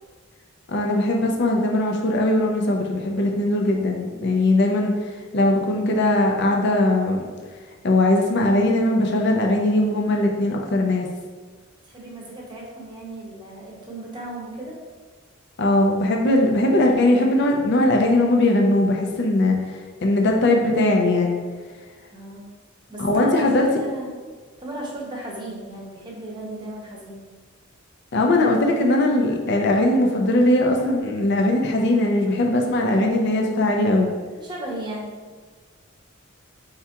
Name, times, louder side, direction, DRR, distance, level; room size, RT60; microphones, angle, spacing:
voice 1, 0.7-4.9 5.3-7.3 7.8-11.1 15.6-21.4 23.0-23.7 28.1-34.1, left 1 dB, 55° left, 1 dB, 0.5 m, -20 dB
voice 2, 11.8-14.8 22.1-22.5 22.9-24.1 24.6-27.2 32.9-33.1 34.4-35.1, right 1 dB, 20° right, -3 dB, 0.8 m, -35 dB
4.5 x 3.5 x 2.9 m, 1.4 s
head